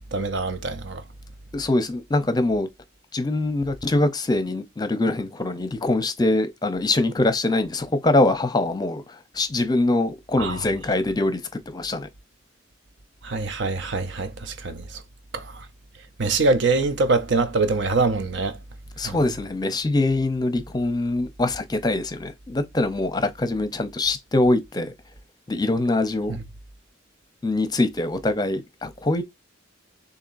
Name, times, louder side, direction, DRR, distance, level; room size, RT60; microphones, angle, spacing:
voice 1, 0.1-1.0 10.4-10.6 13.2-15.0 15.3-15.7 16.2-18.6 19.0-19.2, right 3 dB, 60° right, 0.7 m, -24 dB
voice 2, 1.5-2.7 3.1-12.1 19.0-24.9 25.5-26.4 27.4-29.2, left 2 dB, 20° left, 0.7 m, -23 dB
6.9 x 2.9 x 2.6 m
head